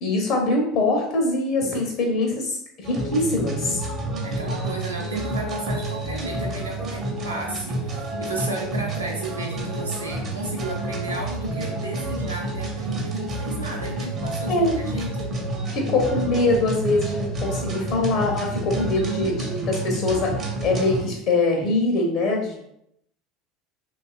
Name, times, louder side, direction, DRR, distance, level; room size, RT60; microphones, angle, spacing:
voice 1, 0.0-3.8 14.5-14.8 15.7-22.6, left 2 dB, 45° left, 0 dB, 0.5 m, -23 dB
sound 1, 2.8-21.1, right 1 dB, 35° right, 0.6 m, -29 dB
voice 2, 4.2-15.3 18.7-19.4, right 2 dB, 80° right, -1 dB, 0.5 m, -33 dB
2.7 x 2.3 x 2.3 m, 0.75 s
figure-of-eight pair, 70°, 0 cm